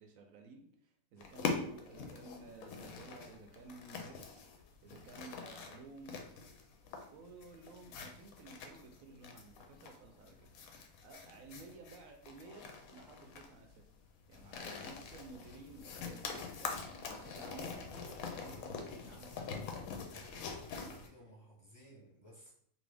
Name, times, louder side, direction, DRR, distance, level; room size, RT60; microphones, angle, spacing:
voice 1, 0.0-4.2 4.8-6.2 6.8-10.5 11.0-13.9 14.3-19.9, right 3 dB, 70° right, 4 dB, 0.9 m, -54 dB
sound 1, 1.2-21.1, left 5 dB, 70° left, 0.9 m, -44 dB
voice 2, 20.1-22.5, equal, 15° right, -5 dB, 0.8 m, -58 dB
2.7 x 2.7 x 3.3 m, 0.66 s
omnidirectional pair, 1.6 m